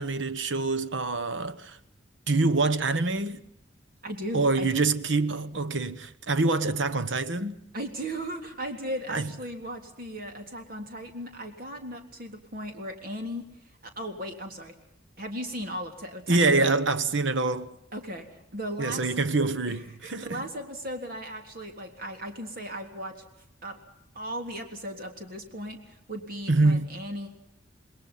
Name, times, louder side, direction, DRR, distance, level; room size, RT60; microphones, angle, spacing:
voice 1, 0.0-1.8 2.3-3.4 4.3-7.6 9.1-9.3 16.3-17.7 18.8-20.4 26.5-26.9, right 3 dB, 70° right, 1.2 m, -25 dB
voice 2, 4.0-4.7 7.7-14.7 15.2-16.8 17.9-19.1 19.7-23.2 23.6-23.8 24.1-27.3, equal, 50° right, 3.5 m, -37 dB
28.0 x 20.5 x 5.7 m
head